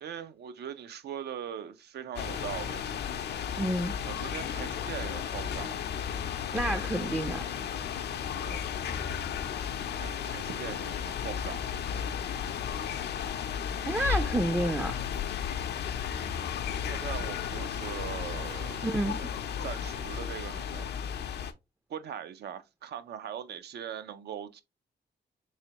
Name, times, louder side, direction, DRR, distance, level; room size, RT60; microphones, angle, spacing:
voice 1, 0.0-2.9 4.0-5.8 8.4-8.6 10.0-11.7 16.9-19.3 19.6-20.9 21.9-24.6, right 9 dB, 70° right, 0.5 m, -40 dB
sound 1, 2.2-21.5, left 8 dB, 75° left, 0.5 m, -34 dB
voice 2, 3.6-3.9 6.5-7.4 13.9-15.0 18.8-19.2, right 1 dB, 10° right, 0.4 m, -29 dB
3.7 x 3.2 x 2.8 m
cardioid pair, 80°, 17 cm